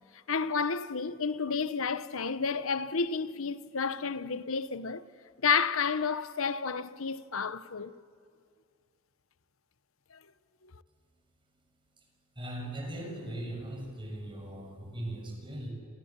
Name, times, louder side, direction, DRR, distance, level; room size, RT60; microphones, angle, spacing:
voice 1, 0.3-5.1 5.4-8.0 10.1-10.2, left 5 dB, 65° left, 0.9 m, -31 dB
voice 2, 12.4-15.7, right 1 dB, 25° right, 6.9 m, -39 dB
29.5 x 27.0 x 7.5 m
head